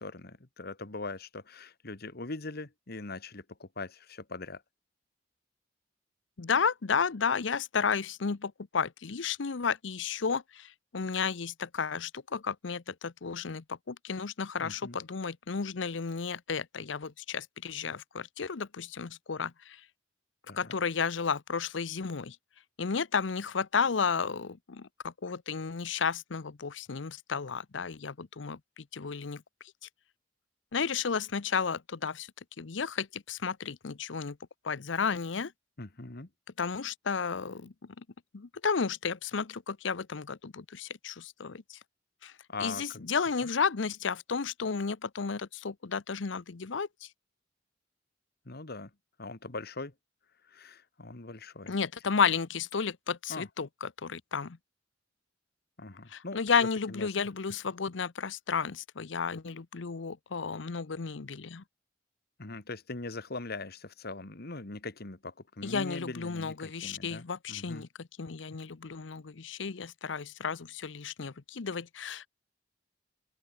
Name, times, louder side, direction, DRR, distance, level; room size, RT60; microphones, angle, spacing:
voice 1, 0.0-4.6 14.6-15.0 20.5-20.8 35.8-36.3 42.5-43.1 43.4-43.5 48.5-48.9 49.2-49.9 50.4-51.7 53.3-53.5 55.8-56.4 56.9-57.1 62.4-67.9, left 3 dB, 55° left, 1.8 m, -41 dB
voice 2, 6.4-19.8 20.6-22.4 22.8-29.4 29.8-29.9 30.7-32.3 32.6-34.4 34.6-35.5 36.6-38.0 38.3-41.8 42.2-42.3 42.6-47.1 51.7-54.6 56.1-61.6 65.6-72.3, left 5 dB, 80° left, 0.8 m, -33 dB
open air
head